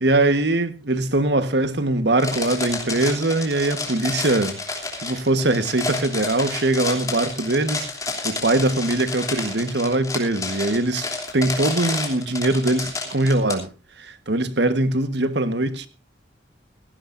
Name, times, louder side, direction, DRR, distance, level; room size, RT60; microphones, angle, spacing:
voice 1, 0.0-4.6 5.0-7.9 8.2-11.1 11.3-13.7 14.0-15.9, right 2 dB, 60° right, 1.3 m, -22 dB
sound 1, 2.2-13.5, left 3 dB, 20° left, 3.1 m, -30 dB
17.5 x 16.5 x 2.6 m
head